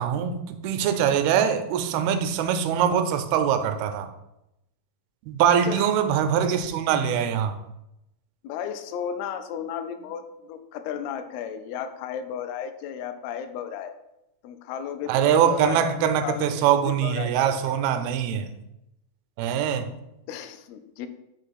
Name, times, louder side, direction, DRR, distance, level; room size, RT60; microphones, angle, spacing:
voice 1, 0.0-4.1 5.3-7.6 15.1-18.5 19.4-19.9, right 8 dB, 90° right, 8 dB, 2.5 m, -23 dB
voice 2, 5.6-6.0 8.4-14.0 14.4-17.7 20.3-21.1, left 8 dB, 85° left, 9 dB, 2.4 m, -34 dB
6.1 x 3.1 x 5.7 m, 0.87 s
omnidirectional pair, 4.3 m